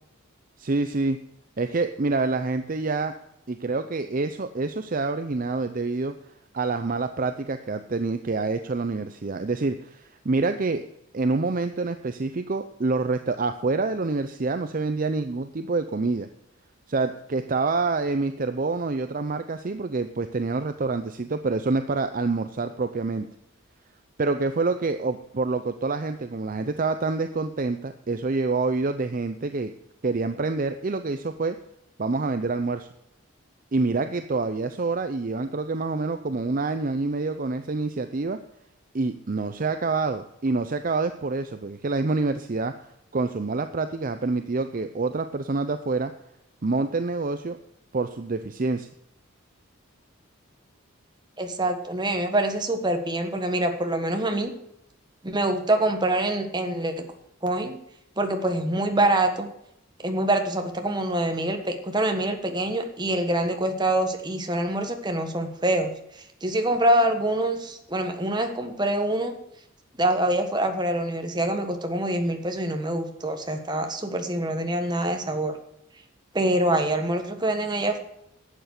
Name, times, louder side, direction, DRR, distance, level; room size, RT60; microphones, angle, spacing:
voice 1, 0.6-1.2 1.6-3.1 3.5-6.1 6.5-10.8 11.1-16.3 16.9-23.3 24.2-29.7 30.0-31.6 32.0-32.9 33.7-38.4 38.9-42.7 43.1-46.1 46.6-47.6 47.9-48.9, right 3 dB, 40° right, 9 dB, 0.6 m, -27 dB
voice 2, 51.4-54.5 55.2-56.9 57.4-57.8 58.2-59.5 60.0-69.3 70.0-75.6 76.3-78.0, right 1 dB, 20° right, 5 dB, 1.4 m, -25 dB
11.5 x 8.0 x 6.6 m, 0.79 s
head